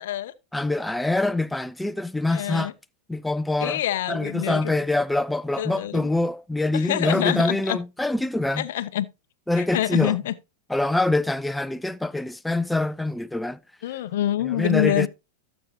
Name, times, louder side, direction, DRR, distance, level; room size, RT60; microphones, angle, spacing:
voice 1, 0.0-0.3 2.3-2.7 3.6-4.8 5.6-6.1 6.7-7.8 8.6-9.1 9.6-10.3 13.8-15.1, left 12 dB, 65° left, 0.6 m, -26 dB
voice 2, 0.5-2.7 3.1-3.8 4.1-8.6 9.5-10.2 10.7-13.6 14.5-15.1, left 2 dB, 5° left, 0.5 m, -25 dB
12.5 x 7.1 x 2.8 m
hypercardioid pair, 100°, 0 cm